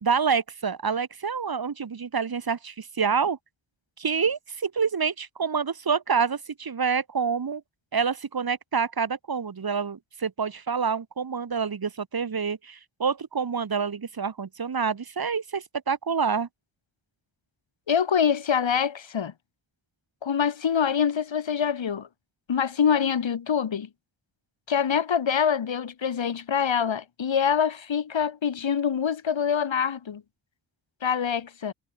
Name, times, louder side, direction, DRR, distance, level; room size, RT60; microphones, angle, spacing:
voice 1, 0.0-3.4 4.0-7.6 7.9-16.5, right 6 dB, 55° right, 3.3 m, -27 dB
voice 2, 17.9-19.3 20.2-22.1 22.5-23.9 24.7-30.2 31.0-31.7, left 7 dB, 85° left, 7.2 m, -25 dB
wide cardioid pair, 120°, 45 cm